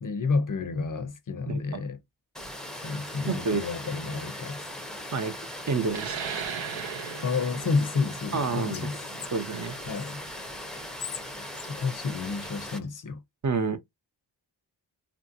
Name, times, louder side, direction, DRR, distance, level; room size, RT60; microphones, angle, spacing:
voice 1, 0.0-2.0 2.8-4.6 7.2-9.0 9.9-10.2 10.8-10.9 11.7-13.2, left 4 dB, 45° left, 0.6 m, -30 dB
voice 2, 1.5-1.8 3.3-3.6 5.1-5.3 5.7-6.2 8.3-8.9 9.3-9.8 13.4-13.8, right 4 dB, 40° right, 0.6 m, -28 dB
Water, 2.3-12.8, left 1 dB, ahead, 0.5 m, -39 dB
sound 1, 5.9-11.0, right 8 dB, 85° right, 0.8 m, -38 dB
Whispering, 8.1-10.1 10.7-12.9, left 8 dB, 80° left, 0.9 m, -44 dB
3.0 x 2.6 x 2.5 m
wide cardioid pair, 135°, 44 cm